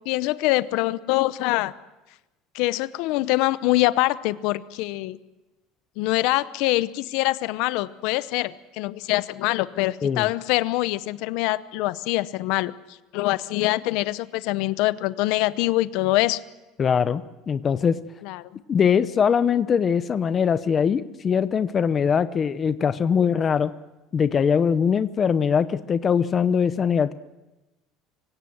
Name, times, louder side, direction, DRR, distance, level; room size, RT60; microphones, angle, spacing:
voice 1, 0.1-1.7 2.5-5.2 6.0-12.7 13.1-16.4 18.2-18.6, left 18 dB, 65° left, 16 dB, 0.7 m, -24 dB
voice 2, 16.8-18.0 18.7-23.7 24.1-27.1, left 7 dB, 25° left, 13 dB, 0.7 m, -22 dB
24.5 x 17.0 x 7.9 m, 1.0 s
cardioid pair, 160°, 0 cm